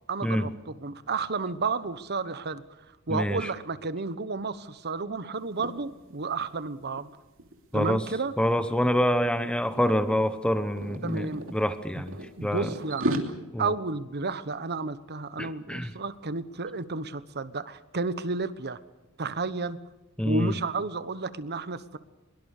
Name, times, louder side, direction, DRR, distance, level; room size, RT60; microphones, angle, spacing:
voice 1, 0.1-2.6 3.1-7.1 7.7-8.3 11.0-11.4 12.0-12.1 12.4-13.2 13.6-18.8 19.2-19.8 20.2-22.0, right 3 dB, 50° right, 14 dB, 1.2 m, -32 dB
voice 2, 3.1-3.5 7.7-8.0 8.4-12.7 13.5-13.7 15.4-15.9 20.2-20.5, equal, 5° left, 11 dB, 1.0 m, -26 dB
sound 1, 5.4-5.7 6.1-6.3 6.6-8.5 9.2-9.5 9.8-11.6 12.1-13.2, right 1 dB, 65° right, 2.9 m, -34 dB
23.0 x 22.5 x 6.7 m, 1.0 s
head